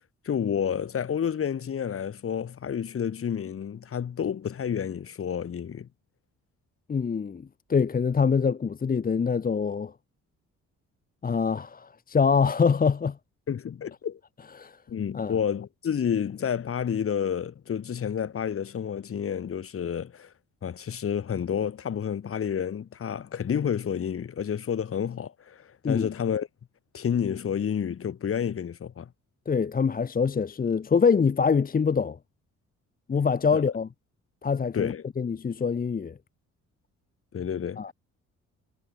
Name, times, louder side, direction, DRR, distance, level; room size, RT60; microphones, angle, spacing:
voice 1, 0.3-5.9 13.5-14.2 14.9-20.3 20.6-26.5 26.9-29.1 33.5-33.6 34.7-35.0 37.3-37.8, left 8 dB, 45° left, 1.9 m, -30 dB
voice 2, 6.9-9.9 11.2-13.2 14.6-14.8 15.1-15.3 25.8-26.1 29.5-32.2 33.1-33.9 34.4-36.2 37.8-37.9, left 5 dB, 30° left, 0.9 m, -25 dB
cardioid pair, 90°, 30 cm